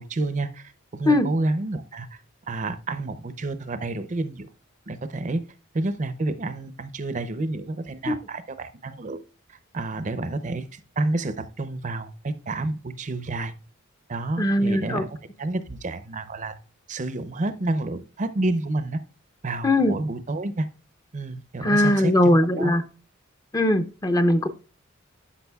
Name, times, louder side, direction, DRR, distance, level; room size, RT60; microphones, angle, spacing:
voice 1, 0.0-2.2 2.5-4.5 4.9-5.4 5.7-9.2 9.5-13.5 14.1-15.1 15.4-16.5 16.9-19.0 19.4-20.7 21.1-22.8, right 2 dB, 35° right, 11 dB, 0.6 m, -29 dB
voice 2, 14.4-15.0 19.6-20.0 21.6-22.8 23.5-24.5, left 1 dB, 20° left, 8 dB, 0.6 m, -20 dB
12.5 x 5.9 x 2.3 m, 0.34 s
head